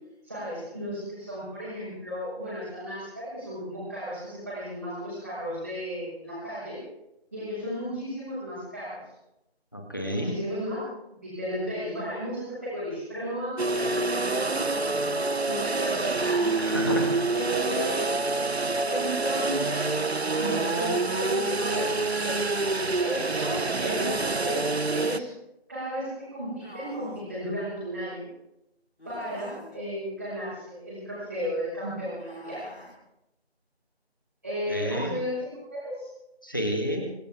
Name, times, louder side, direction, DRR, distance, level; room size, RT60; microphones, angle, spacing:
voice 1, 0.2-6.8 7.3-9.0 10.1-10.8 11.2-16.8 17.3-18.3 18.9-20.0 20.4-22.4 23.0-24.7 24.9-25.3 25.7-28.3 29.0-32.7 34.4-36.1, equal, 15° right, -11 dB, 5.8 m, -34 dB
voice 2, 9.7-10.3 16.5-17.3 34.7-35.1 36.4-37.1, equal, 20° left, 2 dB, 1.8 m, -30 dB
sound 1, 13.6-25.2, right 3 dB, 75° right, 1.0 m, -27 dB
sound 2, 23.7-24.6 26.6-27.4 29.0-29.8 32.2-33.0, left 1 dB, 70° left, 6.5 m, -46 dB
25.5 x 15.0 x 3.6 m, 0.87 s
figure-of-eight pair, 175°, 32 cm